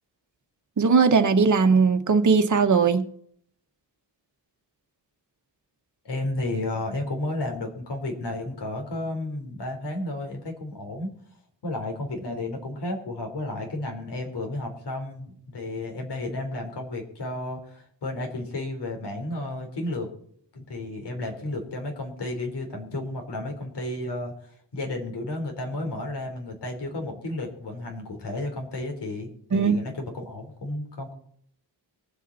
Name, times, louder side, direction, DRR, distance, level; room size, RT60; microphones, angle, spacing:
voice 1, 0.8-3.0 29.5-29.8, right 5 dB, 45° right, 1.3 m, -19 dB
voice 2, 6.0-11.1 11.6-20.1 20.5-24.3 24.7-31.1, left 2 dB, 70° left, 4.2 m, -32 dB
23.5 x 8.3 x 4.2 m
wide cardioid pair, 125°, 43 cm